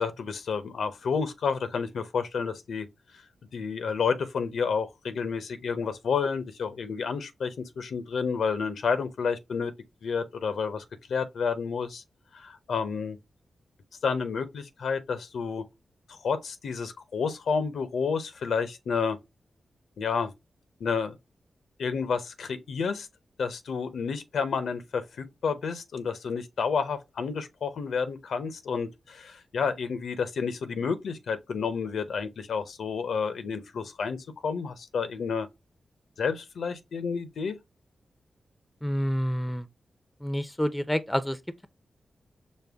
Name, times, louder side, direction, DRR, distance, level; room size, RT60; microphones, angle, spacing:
voice 1, 0.0-2.9 3.5-9.7 10.0-12.0 12.3-13.2 14.0-15.6 16.1-19.2 20.0-20.3 20.8-21.2 21.8-23.1 23.4-35.5 36.2-37.6, left 5 dB, 85° left, 0.6 m, -30 dB
voice 2, 38.8-39.7 40.2-41.4, equal, 10° left, 0.5 m, -28 dB
5.2 x 2.2 x 3.3 m
cardioid pair, 65°, 0 cm